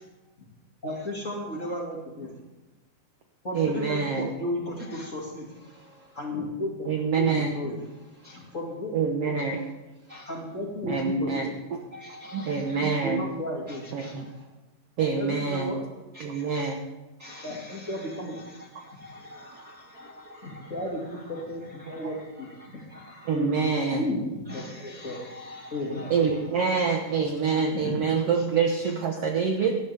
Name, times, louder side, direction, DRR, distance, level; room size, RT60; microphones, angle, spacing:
voice 1, 0.8-2.3 3.4-9.7 10.0-11.5 12.2-12.5 13.0-14.5 15.2-15.8 17.4-18.4 20.4-22.8 23.3-23.6 23.9-25.2 25.7-26.1 27.7-28.0, left 1 dB, 25° left, -2 dB, 2.1 m, -34 dB
voice 2, 3.5-4.3 6.9-7.5 8.9-9.6 10.9-11.5 12.5-13.2 13.9-14.3 15.0-15.7 16.2-16.8 23.3-24.0 26.1-29.7, right 5 dB, 65° right, 2 dB, 1.6 m, -26 dB
voice 3, 11.9-12.5 14.0-14.1 16.3-16.6 17.2-17.4 19.0-20.4 24.8-25.1 25.4-25.7, right 2 dB, 40° right, -3 dB, 1.6 m, -42 dB
18.5 x 12.5 x 3.5 m, 1.1 s
omnidirectional pair, 3.9 m